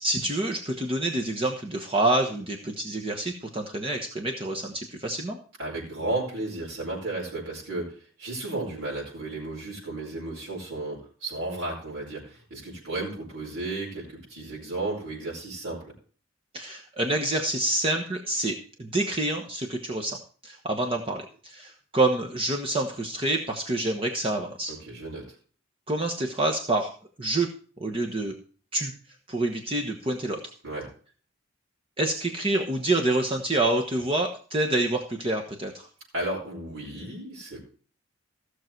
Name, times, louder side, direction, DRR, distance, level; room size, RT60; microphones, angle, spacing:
voice 1, 0.0-5.4 16.5-20.2 20.4-24.7 25.9-26.9 27.2-27.5 27.8-28.3 28.7-28.9 29.3-30.4 32.0-35.9, right 2 dB, 25° right, 2 dB, 1.2 m, -27 dB
voice 2, 5.6-15.8 24.7-25.2 30.6-30.9 36.1-37.6, right 2 dB, 85° right, -6 dB, 5.0 m, -33 dB
15.5 x 6.6 x 4.6 m, 0.41 s
head